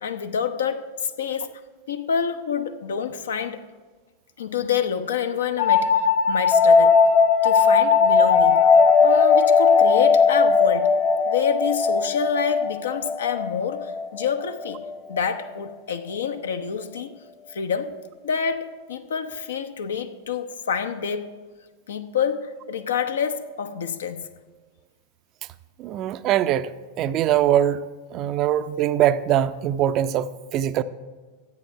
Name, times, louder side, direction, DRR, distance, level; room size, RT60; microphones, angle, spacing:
voice 1, 0.0-0.9 1.2-1.5 1.9-3.6 4.4-7.0 7.4-8.6 9.0-10.9 11.3-14.8 15.1-17.1 17.5-18.0 18.2-21.3 21.9-24.2, left 7 dB, 65° left, 0.8 m, -27 dB
sound 1, 5.6-15.0, left 5 dB, 30° left, 0.7 m, -18 dB
voice 2, 25.8-26.7 27.0-27.9 28.1-30.8, right 11 dB, 35° right, 0.5 m, -22 dB
13.0 x 8.7 x 5.7 m
figure-of-eight pair, 90°, 0 cm